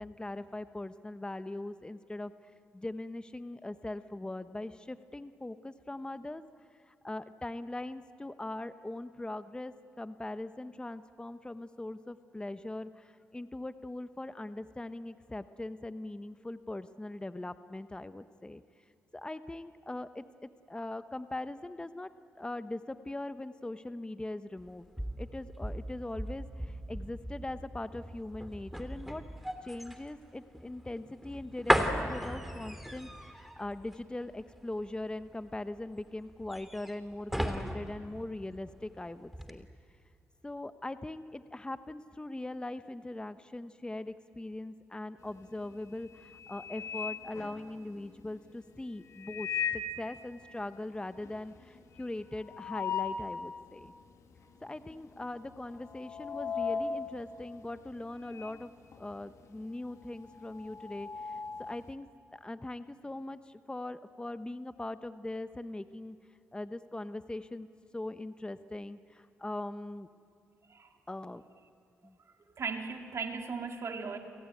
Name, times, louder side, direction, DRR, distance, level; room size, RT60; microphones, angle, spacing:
voice 1, 0.0-2.3 2.7-6.4 6.9-18.6 19.1-22.1 22.4-24.9 25.2-29.2 29.6-39.7 40.4-53.9 54.6-58.7 59.0-61.3 61.6-66.2 66.5-67.7 67.9-70.1 71.1-71.4 72.0-72.1, left 2 dB, 15° left, 12 dB, 0.9 m, -41 dB
sound 1, 24.6-39.0 39.3-39.5, equal, 5° right, 2.8 m, -36 dB
sound 2, 45.3-45.6 46.0-48.1 49.1-50.0 50.4-50.5 50.7-50.8 51.2-53.4 53.9-54.0 54.8-55.1 55.3-58.6 58.9-61.9, left 6 dB, 70° left, 1.9 m, -38 dB
voice 2, 72.6-74.2, right 5 dB, 60° right, 4 dB, 2.2 m, -37 dB
29.5 x 17.5 x 9.2 m, 2.5 s
supercardioid pair, 50°, 5 cm